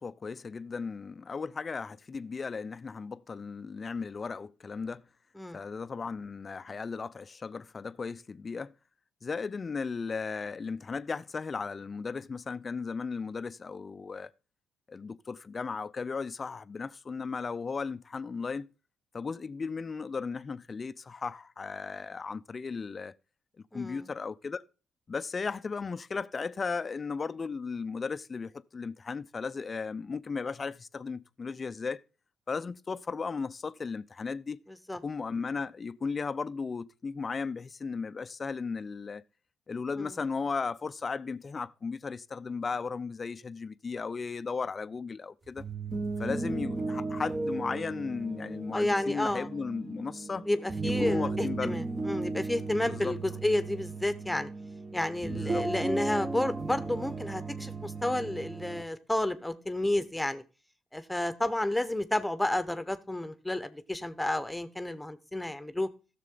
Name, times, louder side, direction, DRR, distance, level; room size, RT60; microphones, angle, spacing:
voice 1, 0.0-5.0 5.5-8.7 9.2-14.3 14.9-18.7 19.1-23.1 23.7-24.6 25.1-32.0 32.5-34.6 35.0-39.2 39.7-45.6 46.2-50.5 50.8-51.7 52.8-53.2 55.3-55.7, left 5 dB, 40° left, 0.5 m, -36 dB
voice 2, 23.7-24.1 34.9-35.0 40.0-40.1 48.7-49.5 50.5-54.5 54.9-60.4 60.9-65.9, left 1 dB, 10° left, 1.1 m, -31 dB
sound 1, 45.5-58.8, right 3 dB, 30° right, 1.5 m, -35 dB
15.5 x 6.7 x 3.9 m
hypercardioid pair, 50°, 0 cm